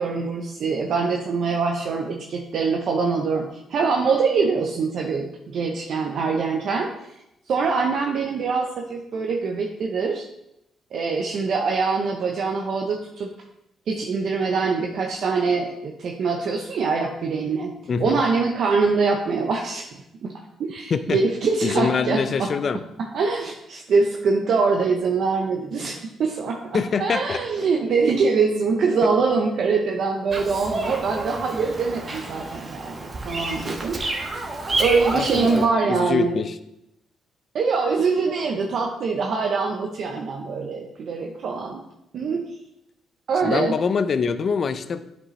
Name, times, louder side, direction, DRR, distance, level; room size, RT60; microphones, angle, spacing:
voice 1, 0.0-6.9 7.5-10.3 10.9-13.3 13.9-17.7 18.0-19.9 20.2-20.3 20.6-22.5 23.1-34.0 34.8-36.4 37.5-41.8 42.1-42.4 43.3-43.7, right 4 dB, 65° right, 1 dB, 0.8 m, -23 dB
voice 2, 17.9-18.2 20.9-21.2 21.6-22.8 26.7-27.4 35.1-36.6 43.4-45.0, left 5 dB, 50° left, 11 dB, 0.5 m, -24 dB
Bird vocalization bird call bird song, 30.3-35.7, right 2 dB, 35° right, 1.2 m, -29 dB
8.6 x 5.3 x 3.2 m, 0.82 s
cardioid pair, 90°, 0 cm